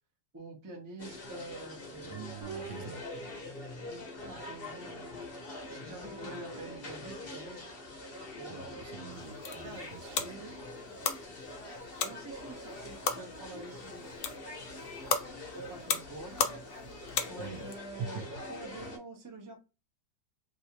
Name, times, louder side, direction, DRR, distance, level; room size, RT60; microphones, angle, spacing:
voice 1, 0.3-2.3 3.9-5.2 5.6-7.6 8.4-8.7 9.6-10.6 12.0-14.0 15.5-16.6 17.3-19.6, right 2 dB, 30° right, 0.3 m, -47 dB
sound 1, 1.0-19.0, left 2 dB, 40° left, 1.0 m, -44 dB
voice 2, 2.0-3.0 8.5-10.2 17.4-17.7 18.7-18.9, right 7 dB, 80° right, 1.2 m, -46 dB
sound 2, 2.4-5.1 5.7-8.2, right 5 dB, 60° right, 1.3 m, -50 dB
sound 3, 9.1-17.8, left 6 dB, 70° left, 0.8 m, -37 dB
3.1 x 2.8 x 2.8 m
omnidirectional pair, 1.9 m